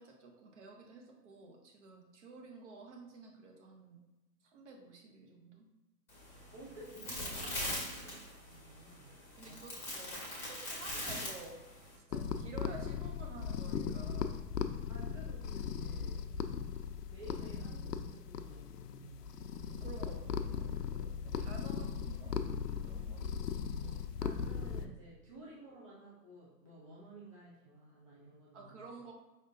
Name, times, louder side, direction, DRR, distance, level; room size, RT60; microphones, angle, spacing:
voice 1, 0.0-4.0 4.4-5.7 7.9-8.2 9.4-11.6 12.1-14.3 19.8-22.3 22.8-23.5 23.8-24.1 28.5-29.1, right 3 dB, 45° right, 2 dB, 1.0 m, -52 dB
sound 1, 6.1-12.0, left 1 dB, 5° left, 1.0 m, -41 dB
voice 2, 6.5-9.1 9.4-9.7 14.9-16.2 17.1-19.4 22.9-23.1 23.5-23.6 24.2-28.8, right 1 dB, 20° right, -7 dB, 0.4 m, -53 dB
sound 2, 12.1-24.8, left 7 dB, 70° left, 0.5 m, -38 dB
5.2 x 3.5 x 2.6 m, 1.1 s
hypercardioid pair, 135°, 49 cm